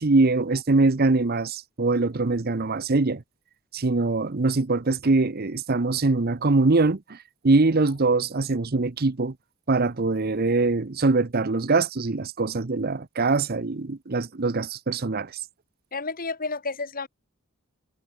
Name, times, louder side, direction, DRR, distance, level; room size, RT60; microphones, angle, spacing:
voice 1, 0.0-3.2 3.7-7.2 7.4-9.3 9.7-15.3, right 3 dB, 45° right, 0.8 m, -23 dB
voice 2, 15.9-17.1, left 3 dB, 40° left, 2.6 m, -31 dB
head